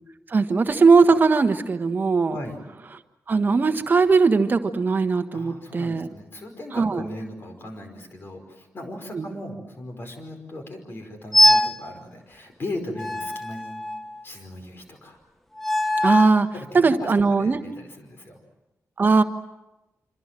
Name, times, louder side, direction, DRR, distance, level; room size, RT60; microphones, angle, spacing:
voice 1, 0.3-2.3 3.3-6.1 6.7-7.0 9.1-9.3 16.0-16.5 16.7-17.6 19.0-19.2, right 4 dB, 35° right, 8 dB, 1.4 m, -19 dB
voice 2, 2.2-2.6 5.3-13.8 14.2-15.2 16.5-18.4, left 1 dB, 40° left, 4 dB, 5.3 m, -38 dB
sound 1, 11.3-11.8 13.0-14.2 15.6-16.4, left 1 dB, 5° left, 1.1 m, -21 dB
27.0 x 26.5 x 7.6 m, 0.99 s
wide cardioid pair, 170°, 6 cm